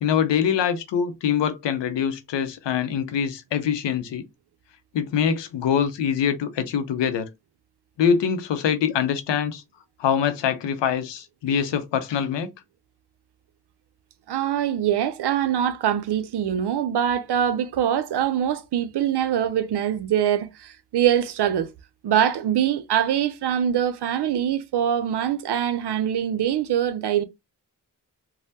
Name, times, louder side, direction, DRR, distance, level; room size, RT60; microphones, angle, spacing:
voice 1, 0.0-4.2 4.9-7.3 8.0-9.6 10.0-12.5, left 8 dB, 90° left, 0.6 m, -24 dB
voice 2, 14.3-21.7 22.0-27.2, right 10 dB, 70° right, 0.6 m, -23 dB
3.3 x 2.1 x 2.7 m
cardioid pair, 45°, 42 cm